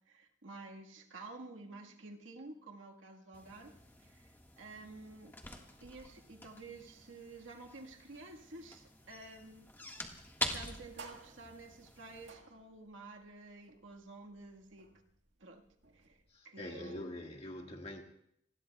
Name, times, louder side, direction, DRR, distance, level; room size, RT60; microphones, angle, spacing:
voice 1, 0.0-4.3 4.6-5.4 5.8-9.7 10.4-14.9 15.4-15.6 15.9-16.2 16.4-17.1, right 2 dB, 85° right, 1.7 m, -51 dB
sound 1, 3.3-12.3, left 1 dB, 10° left, 1.6 m, -46 dB
sound 2, 9.0-16.4, right 4 dB, 70° right, 1.8 m, -59 dB
voice 2, 16.3-18.0, left 1 dB, 35° left, 1.9 m, -44 dB
27.5 x 20.5 x 2.3 m
head